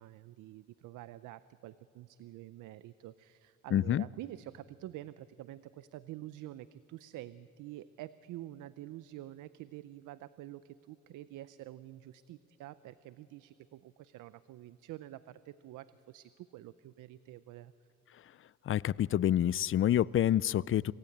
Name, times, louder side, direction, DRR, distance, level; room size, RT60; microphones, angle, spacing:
voice 1, 0.0-17.7, right 14 dB, 85° right, 15 dB, 0.6 m, -48 dB
voice 2, 3.7-4.0 18.7-20.9, left 11 dB, 45° left, 22 dB, 0.4 m, -27 dB
26.5 x 18.0 x 8.6 m, 2.8 s
cardioid pair, 90°, 30 cm